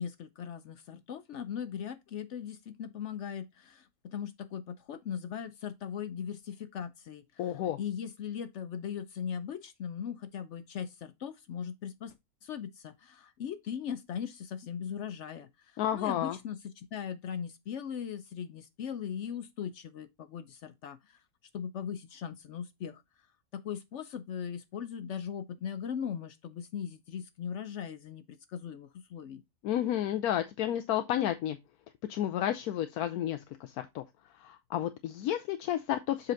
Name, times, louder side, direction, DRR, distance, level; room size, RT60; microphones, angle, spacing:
voice 1, 0.0-12.1 12.4-21.2 21.5-23.0 23.5-29.4, left 8 dB, 65° left, 0.8 m, -39 dB
voice 2, 7.4-7.8 15.8-16.4 29.6-31.6 32.1-34.0 34.4-36.3, left 11 dB, 80° left, 1.1 m, -31 dB
7.6 x 4.5 x 3.7 m
omnidirectional pair, 1.6 m